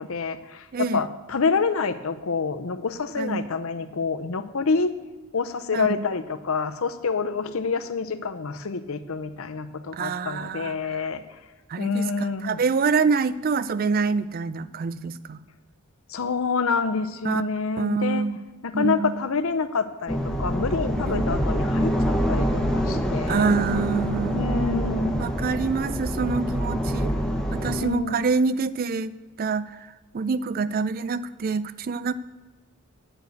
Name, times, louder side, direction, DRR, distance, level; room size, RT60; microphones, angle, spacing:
voice 1, 0.0-4.9 5.3-11.2 11.8-12.6 16.1-18.3 18.6-23.5 24.3-25.2 27.8-28.2, left 4 dB, 70° left, 10 dB, 0.7 m, -27 dB
voice 2, 0.7-1.1 3.2-3.5 5.7-6.0 9.9-11.0 11.7-15.4 17.2-17.4 17.8-18.4 18.7-19.2 21.0-21.2 23.3-24.5 25.2-27.1 27.5-29.9 30.1-32.1, right 4 dB, 40° right, 16 dB, 0.4 m, -26 dB
sound 1, 20.1-27.8, equal, 5° left, 1.0 m, -25 dB
9.1 x 6.6 x 8.1 m, 1.3 s
head